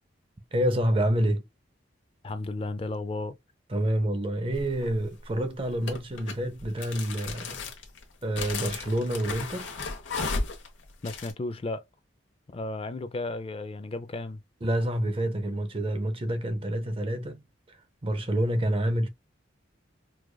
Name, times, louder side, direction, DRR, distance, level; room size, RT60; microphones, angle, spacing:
voice 1, 0.5-1.4 3.7-7.6 8.2-9.7 14.6-19.1, right 1 dB, 30° right, 0.6 m, -28 dB
voice 2, 2.2-3.4 11.0-11.8 12.5-14.4, left 2 dB, 30° left, 0.4 m, -34 dB
sound 1, 4.5-5.0 5.8-11.3, left 3 dB, 75° left, 1.0 m, -34 dB
4.7 x 2.4 x 2.2 m
head